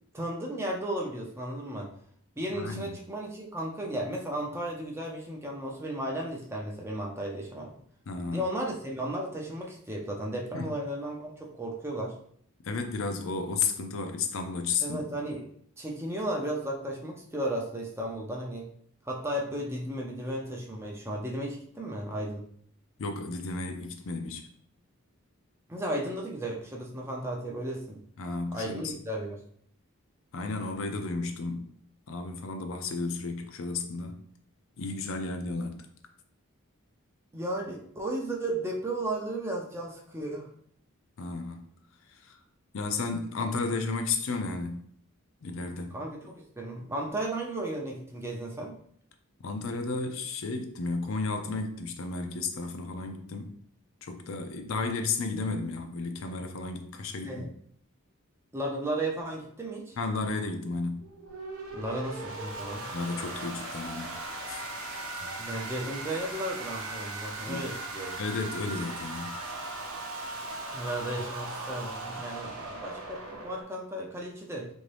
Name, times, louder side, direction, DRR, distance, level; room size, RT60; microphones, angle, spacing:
voice 1, 0.1-1.9 2.4-7.8 8.3-12.2 14.8-15.4 15.8-18.7 19.0-22.5 25.7-28.0 28.5-29.4 37.3-40.5 45.9-48.8 57.2-57.5 58.5-60.0 61.7-62.9 65.4-68.1 70.7-74.7, right 1 dB, 10° right, 0.4 m, -34 dB
voice 2, 2.5-2.9 8.1-8.5 10.5-10.6 12.6-15.1 23.0-24.5 28.2-29.0 30.3-31.7 32.1-34.2 34.8-35.9 41.2-41.6 42.1-42.4 42.7-44.9 45.4-46.0 49.4-53.6 54.0-57.5 60.0-61.1 62.9-64.1 64.5-64.6 65.2-65.3 67.5-67.7 68.2-69.4, left 3 dB, 65° left, 0.5 m, -33 dB
sound 1, 61.0-73.6, right 2 dB, 80° right, 0.7 m, -38 dB
3.4 x 2.6 x 3.3 m
head